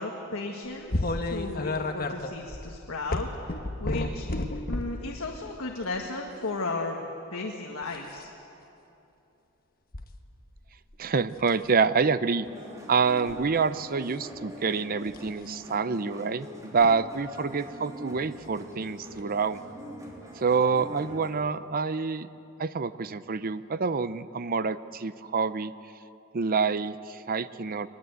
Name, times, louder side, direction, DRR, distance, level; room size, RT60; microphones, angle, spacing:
voice 1, 0.0-4.3 4.7-7.0 7.3-8.3, left 3 dB, 70° left, 1 dB, 1.7 m, -35 dB
sound 1, 0.9-5.0 5.8-6.0 7.8-8.2 9.9-10.1 10.6-11.0 11.4-11.7 13.1-13.4 15.1-15.3 16.8-16.9 18.4-18.5 19.2-19.3, left 2 dB, 45° left, 1.3 m, -31 dB
voice 2, 11.0-12.5 12.9-19.6 20.4-22.3 22.6-25.7 26.3-27.9, right 5 dB, 45° right, 14 dB, 0.6 m, -27 dB
sound 2, 12.4-21.3, equal, 15° right, 3.3 m, -43 dB
22.5 x 20.0 x 8.1 m, 2.9 s
head